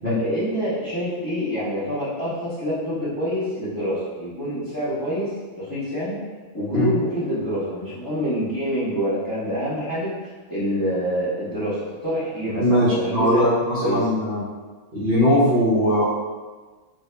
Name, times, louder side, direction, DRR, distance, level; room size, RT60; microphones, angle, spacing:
voice 1, 0.0-6.2 6.5-13.4 13.8-14.0, equal, 15° left, -12 dB, 1.0 m, -26 dB
voice 2, 12.6-14.4 14.9-16.0, equal, 50° right, -10 dB, 0.8 m, -20 dB
5.0 x 2.5 x 2.2 m, 1.4 s
omnidirectional pair, 1.5 m